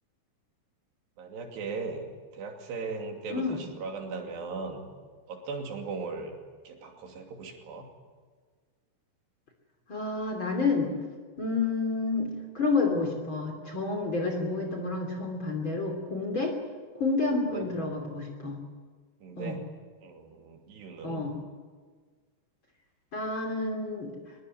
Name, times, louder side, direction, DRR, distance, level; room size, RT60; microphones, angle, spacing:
voice 1, 1.2-4.9 5.3-6.4 6.6-7.9 17.5-17.6 19.2-19.6 20.0-21.2, right 4 dB, 70° right, 3 dB, 4.8 m, -38 dB
voice 2, 9.9-10.9 11.4-16.5 16.9-18.6 19.4-19.6 21.0-21.4 23.1-24.3, left 3 dB, 30° left, 2 dB, 3.3 m, -29 dB
23.5 x 22.0 x 9.7 m, 1.5 s
omnidirectional pair, 5.0 m